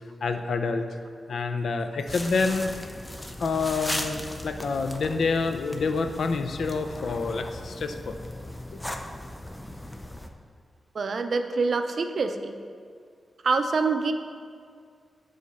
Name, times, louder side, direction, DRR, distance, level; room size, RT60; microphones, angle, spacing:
voice 1, 0.2-0.8 1.3-2.7 3.4-8.2, left 4 dB, 75° left, 7 dB, 0.4 m, -27 dB
sound 1, 2.1-10.3, left 1 dB, 10° left, 0.5 m, -37 dB
voice 2, 10.9-12.5 13.4-14.1, right 4 dB, 60° right, 7 dB, 0.5 m, -25 dB
8.2 x 3.9 x 5.5 m, 2.1 s
wide cardioid pair, 110°, 0 cm